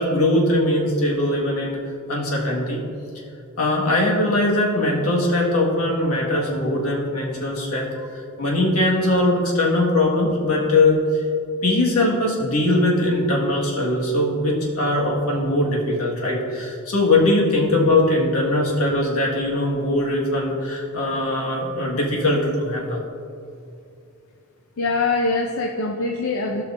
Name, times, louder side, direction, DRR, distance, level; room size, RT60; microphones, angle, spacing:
voice 1, 0.0-1.8 2.1-2.8 3.6-11.0 11.6-23.0, left 1 dB, 85° left, -3 dB, 1.7 m, -21 dB
voice 2, 24.8-26.6, left 3 dB, 65° left, 3 dB, 0.6 m, -23 dB
16.5 x 5.7 x 2.6 m, 2.5 s
head